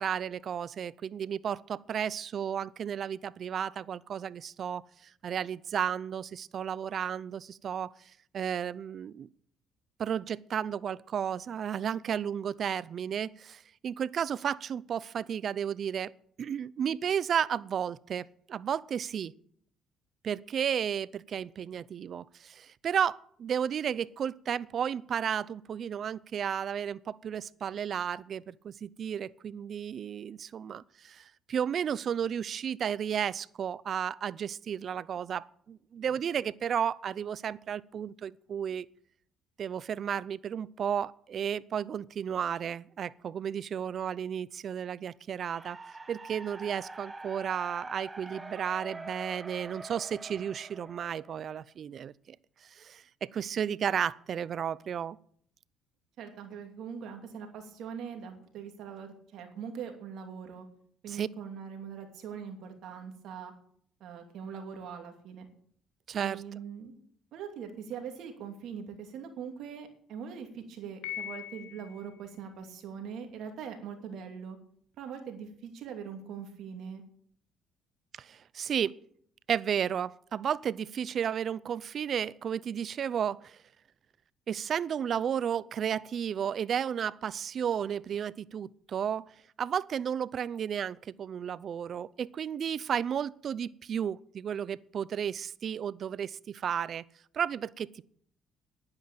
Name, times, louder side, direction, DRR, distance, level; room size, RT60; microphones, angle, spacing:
voice 1, 0.0-7.9 8.3-9.3 10.0-16.1 16.4-19.3 20.2-38.9 39.6-45.8 46.1-52.4 52.6-55.2 61.1-61.3 66.1-66.4 78.1-79.0 79.5-83.6 84.5-89.3 89.6-97.0 97.3-98.0, right 8 dB, 55° right, 0.5 m, -33 dB
sound 1, 45.5-51.6, right 2 dB, 25° right, 1.5 m, -45 dB
voice 2, 56.2-60.7 61.0-63.5 64.0-65.5 66.2-66.9 67.3-74.6 75.0-77.0, right 7 dB, 70° right, 2.7 m, -42 dB
Piano, 71.0-72.2, left 11 dB, 85° left, 2.0 m, -40 dB
11.0 x 9.7 x 7.5 m
supercardioid pair, 80°, 0 cm